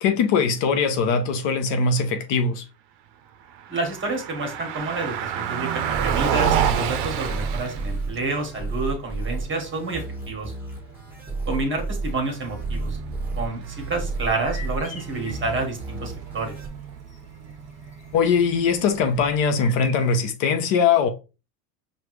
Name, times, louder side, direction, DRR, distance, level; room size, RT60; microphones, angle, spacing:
voice 1, 0.0-2.6 18.1-21.1, left 5 dB, 60° left, 0.9 m, -21 dB
Car passing by, 3.5-19.6, right 8 dB, 55° right, 0.6 m, -31 dB
voice 2, 3.7-10.5 11.5-13.0 13.3-16.5, right 2 dB, 25° right, 1.5 m, -29 dB
sound 1, 5.9-16.7, right 3 dB, 5° right, 1.5 m, -32 dB
sound 2, 14.4-15.7 16.4-16.5 16.9-20.3, left 3 dB, 15° left, 1.3 m, -42 dB
4.9 x 2.6 x 3.1 m
supercardioid pair, 105°, 50 cm